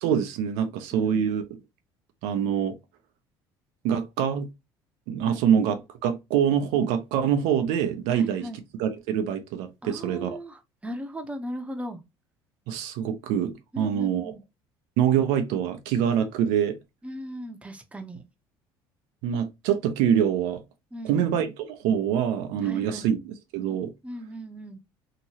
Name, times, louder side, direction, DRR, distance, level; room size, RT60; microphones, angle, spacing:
voice 1, 0.0-1.4 2.2-2.8 3.8-4.5 5.1-8.4 8.8-10.3 12.7-14.3 15.0-16.8 19.2-20.6 21.0-23.9, right 9 dB, 75° right, 0.6 m, -25 dB
voice 2, 0.9-1.3 5.3-5.6 8.1-8.6 9.8-12.0 13.7-14.4 17.0-18.2 20.9-21.3 22.6-23.1 24.0-24.8, equal, 10° right, 0.7 m, -38 dB
2.9 x 2.6 x 2.8 m
hypercardioid pair, 75°, 11 cm